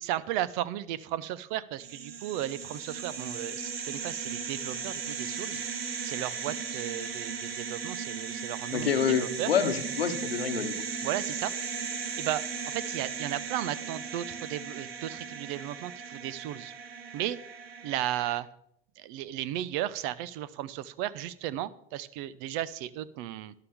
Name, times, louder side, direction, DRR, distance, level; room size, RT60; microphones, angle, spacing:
voice 1, 0.0-5.6 6.0-9.5 11.0-11.9 12.2-16.7 17.1-17.4 17.8-18.5 19.0-23.5, right 13 dB, 60° right, 18 dB, 0.7 m, -35 dB
sound 1, 1.8-18.4, right 6 dB, 85° right, 1.1 m, -37 dB
voice 2, 8.7-10.7, left 7 dB, 85° left, 10 dB, 1.0 m, -27 dB
12.5 x 11.0 x 3.6 m, 0.73 s
hypercardioid pair, 75°, 29 cm